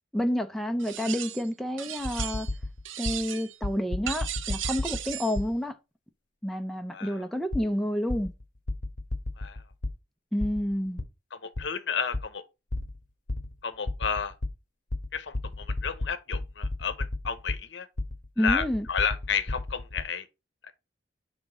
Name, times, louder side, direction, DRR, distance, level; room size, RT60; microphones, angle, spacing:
voice 1, 0.1-2.5 3.0-5.8 6.4-8.3 10.3-11.0 18.4-18.9, equal, ahead, 0.5 m, -29 dB
sound 1, 0.8-1.5 1.8-2.6 2.8-3.6 4.1-5.4, right 11 dB, 85° right, 0.6 m, -36 dB
sound 2, 2.0-3.2 3.6-5.5 7.5-7.6 8.1-9.9 10.4-11.0 11.6-11.7 12.1-12.2 12.7-13.0 13.3-13.6 13.9-14.5 14.9-17.6 18.0-20.0, left 2 dB, 45° left, 0.9 m, -32 dB
voice 2, 6.9-7.3 9.4-9.6 11.4-12.4 13.6-14.3 15.1-17.9 18.4-20.3, left 6 dB, 65° left, 0.8 m, -32 dB
5.9 x 3.5 x 4.9 m
head